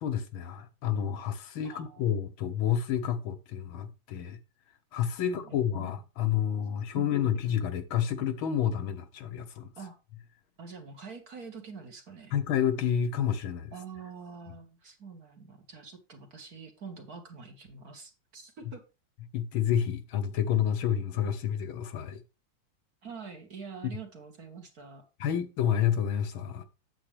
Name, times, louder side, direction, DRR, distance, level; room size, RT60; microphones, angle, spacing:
voice 1, 0.0-4.4 4.9-9.7 12.3-13.7 19.3-22.2 23.8-24.0 25.2-26.6, left 9 dB, 75° left, 1.7 m, -29 dB
voice 2, 1.6-2.2 5.2-5.9 6.9-7.5 9.8-10.0 10.6-12.3 13.7-18.8 23.0-25.0, right 5 dB, 45° right, 1.9 m, -45 dB
8.8 x 7.4 x 3.3 m
omnidirectional pair, 2.4 m